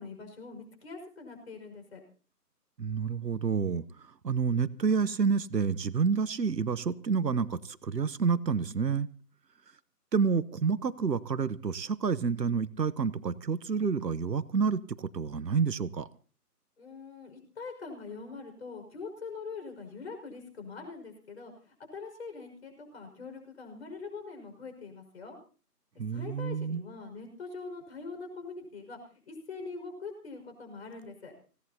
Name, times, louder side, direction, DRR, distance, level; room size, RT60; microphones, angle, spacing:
voice 1, 0.0-2.0 16.8-25.4 26.1-29.0 29.3-31.3, left 4 dB, 40° left, 5 dB, 5.6 m, -43 dB
voice 2, 2.8-3.8 4.2-9.1 10.1-16.1 26.0-26.8, right 5 dB, 80° right, 16 dB, 1.2 m, -29 dB
26.0 x 17.0 x 2.9 m, 0.38 s
figure-of-eight pair, 165°, 48 cm